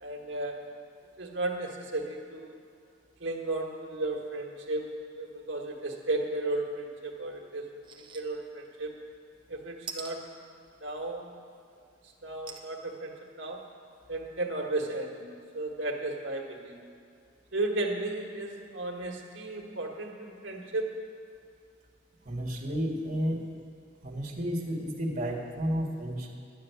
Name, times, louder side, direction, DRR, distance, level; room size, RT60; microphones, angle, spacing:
voice 1, 0.0-0.6 1.2-2.6 3.2-4.9 5.2-7.7 8.1-8.9 9.5-10.2 10.8-11.4 12.2-13.6 14.1-15.2 15.5-16.8 17.5-21.0, right 2 dB, 90° right, 1 dB, 1.6 m, -34 dB
sound 1, 7.8-8.2 8.6-8.7 9.9-10.1 12.5-12.7 13.3-13.4 13.6-13.7, right 5 dB, 25° right, 0.9 m, -41 dB
voice 2, 22.3-23.4 24.0-26.3, equal, 45° right, -2 dB, 1.8 m, -32 dB
11.5 x 6.5 x 9.3 m, 2.4 s
head